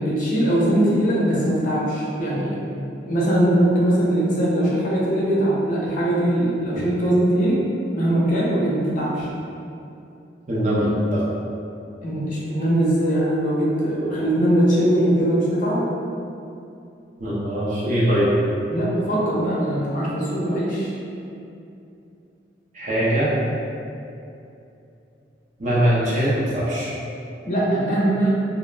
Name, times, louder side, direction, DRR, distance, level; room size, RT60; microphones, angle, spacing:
voice 1, 0.0-2.6 3.0-7.6 7.9-9.3 12.0-15.8 18.7-20.9 27.4-28.3, right 1 dB, 50° left, -6 dB, 0.6 m, -21 dB
voice 2, 10.5-11.2 17.2-18.3 22.7-23.4 25.6-26.9, equal, 45° right, -7 dB, 0.5 m, -21 dB
2.2 x 2.0 x 3.2 m, 2.7 s
head